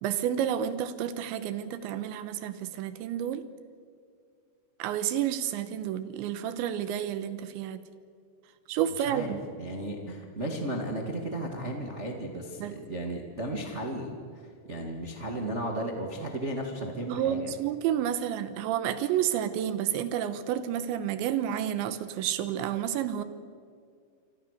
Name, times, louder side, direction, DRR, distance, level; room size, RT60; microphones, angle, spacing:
voice 1, 0.0-3.5 4.8-7.8 8.7-9.4 12.6-12.7 17.0-23.2, right 10 dB, 80° right, 12 dB, 3.2 m, -30 dB
voice 2, 9.6-14.1 14.7-17.5, right 1 dB, 45° right, 2 dB, 0.9 m, -34 dB
28.0 x 24.0 x 6.7 m, 2.3 s
omnidirectional pair, 5.4 m